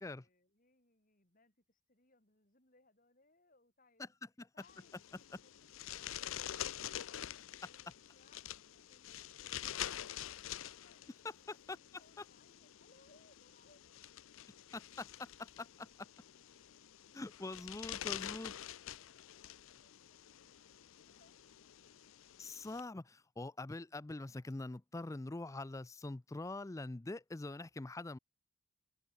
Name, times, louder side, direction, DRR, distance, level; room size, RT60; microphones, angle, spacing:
voice 1, 0.0-4.2 4.5-6.6 7.0-7.3 7.6-10.4 10.7-11.3 11.7-14.0 17.1-18.0 18.3-22.2, left 3 dB, 40° left, 5.5 m, -71 dB
sound 1, 4.6-22.8, left 11 dB, 70° left, 0.5 m, -47 dB
voice 2, 14.7-16.1 17.1-18.5 22.4-28.2, left 2 dB, 15° left, 0.4 m, -44 dB
head